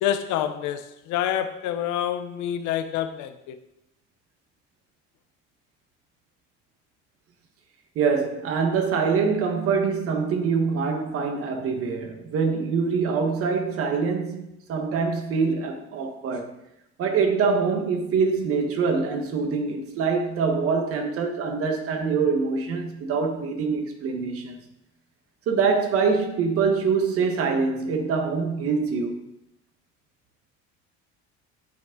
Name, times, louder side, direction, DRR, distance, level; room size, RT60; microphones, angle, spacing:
voice 1, 0.0-3.6, left 10 dB, 75° left, 1.0 m, -27 dB
voice 2, 7.9-16.5 17.0-24.6 25.5-29.3, right 5 dB, 50° right, 1.4 m, -24 dB
9.1 x 8.5 x 3.8 m
cardioid pair, 155°, 29 cm